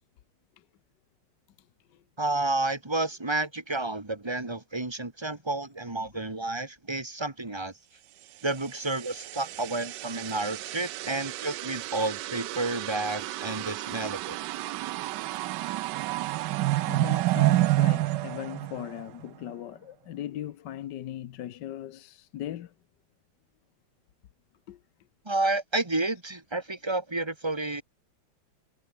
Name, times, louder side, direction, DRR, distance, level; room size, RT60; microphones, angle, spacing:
voice 1, 1.6-2.0 6.1-6.2 11.2-11.3 14.8-14.9 16.9-22.7 24.7-24.8, left 12 dB, 70° left, 1.5 m, -39 dB
voice 2, 2.2-7.7 8.4-14.4 25.3-27.8, right 2 dB, 15° right, 1.9 m, -30 dB
sound 1, 8.6-19.3, right 17 dB, 75° right, 1.1 m, -30 dB
omnidirectional pair, 2.0 m